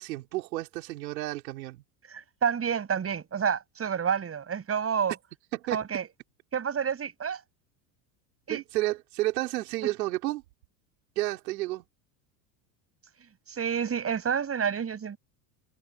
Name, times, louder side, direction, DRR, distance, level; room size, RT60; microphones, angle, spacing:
voice 1, 0.0-1.8 5.5-5.8 8.5-10.4 11.2-11.8, right 17 dB, 85° right, 4.7 m, -31 dB
voice 2, 2.1-5.1 5.7-6.1 6.5-7.4 8.5-8.6 13.5-15.2, right 7 dB, 30° right, 7.8 m, -29 dB
supercardioid pair, 100°, 49 cm